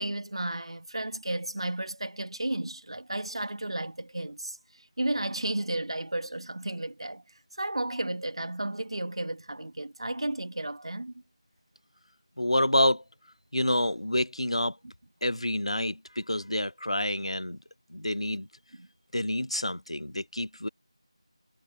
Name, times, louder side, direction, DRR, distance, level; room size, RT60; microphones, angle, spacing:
voice 1, 0.0-4.6 5.0-7.2 7.6-11.1 18.7-18.9, right 1 dB, 70° right, 2.0 m, -33 dB
voice 2, 12.4-13.0 13.5-14.8 15.2-17.6 17.9-18.5 19.1-20.7, left 1 dB, 85° left, 0.9 m, -28 dB
figure-of-eight pair, 170°, 3 cm